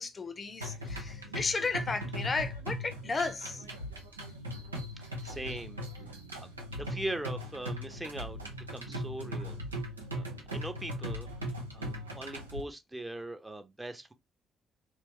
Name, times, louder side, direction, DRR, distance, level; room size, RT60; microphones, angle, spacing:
voice 1, 0.0-3.6, left 4 dB, 35° left, 0.6 m, -34 dB
sound 1, 0.6-12.6, equal, 90° right, 0.6 m, -39 dB
voice 2, 5.2-5.8 6.4-6.5 6.7-8.4 8.7-9.6 10.1-10.2 10.5-11.3 11.7-14.1, right 1 dB, 15° right, 0.7 m, -40 dB
3.3 x 3.0 x 3.1 m
figure-of-eight pair, 40°, 0 cm